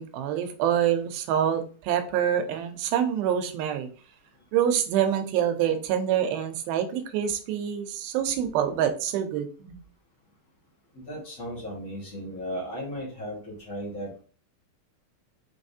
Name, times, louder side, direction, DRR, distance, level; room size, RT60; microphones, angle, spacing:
voice 1, 0.0-3.9 4.5-9.8, right 9 dB, 90° right, 7 dB, 2.5 m, -26 dB
voice 2, 10.9-14.2, equal, 40° left, -4 dB, 1.1 m, -36 dB
5.8 x 3.2 x 2.7 m, 0.39 s
omnidirectional pair, 4.2 m